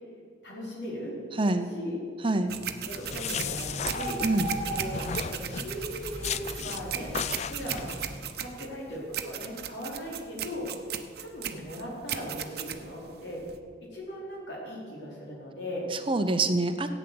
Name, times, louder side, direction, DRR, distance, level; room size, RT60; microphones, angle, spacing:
voice 1, 0.4-1.1 1.7-2.0 2.8-4.2 4.7-5.0 5.3-7.1 7.5-7.9 8.4-10.7 11.2-13.4 13.9-15.9, equal, 70° left, -4 dB, 4.6 m, -38 dB
voice 2, 1.4-1.7 2.2-2.5 4.2-4.5 15.9-17.0, right 2 dB, 30° right, 8 dB, 0.7 m, -26 dB
sound 1, 2.5-13.6, right 9 dB, 55° right, 0.9 m, -37 dB
sound 2, 2.9-4.6 4.9-5.7 6.2-6.8 7.1-8.0, left 7 dB, 35° left, 0.4 m, -35 dB
sound 3, 3.0-8.2, equal, 5° left, 4.2 m, -38 dB
15.0 x 9.2 x 7.7 m, 2.2 s
head